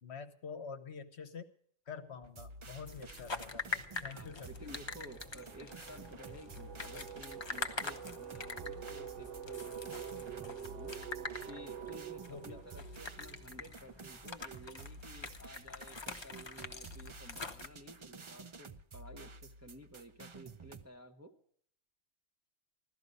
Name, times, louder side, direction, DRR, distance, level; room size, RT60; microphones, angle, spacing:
voice 1, 0.0-1.5 1.9-4.5 12.3-12.6, left 6 dB, 55° left, 7 dB, 1.2 m, -47 dB
sound 1, 2.1-2.3 2.7-14.2, right 8 dB, 65° right, 1.1 m, -48 dB
sound 2, 2.2-20.8, right 3 dB, 35° right, 0.5 m, -52 dB
sound 3, 2.8-17.7, left 3 dB, 25° left, 0.8 m, -45 dB
voice 2, 4.1-11.0 11.5-18.7 18.9-21.3, equal, 15° right, 3 dB, 0.9 m, -53 dB
16.5 x 12.5 x 5.4 m, 0.64 s
omnidirectional pair, 1.3 m